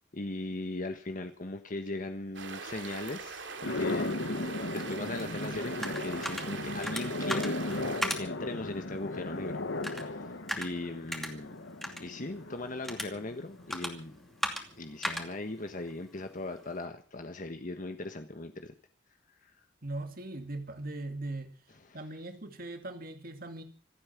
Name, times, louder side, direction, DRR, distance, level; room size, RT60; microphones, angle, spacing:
voice 1, 0.1-4.1 4.7-9.7 10.1-11.6 12.0-14.2 14.8-18.7 19.4-19.5 21.8-22.0, left 2 dB, 45° left, 7 dB, 1.4 m, -39 dB
sound 1, 2.3-8.0, right 4 dB, 85° right, 2.7 m, -42 dB
sound 2, 3.6-14.0, left 2 dB, 80° left, 1.5 m, -36 dB
sound 3, 5.2-16.9, equal, ahead, 2.6 m, -40 dB
voice 2, 19.8-21.5 21.9-23.6, right 2 dB, 50° right, 7 dB, 2.4 m, -39 dB
26.5 x 8.9 x 6.1 m, 0.39 s
head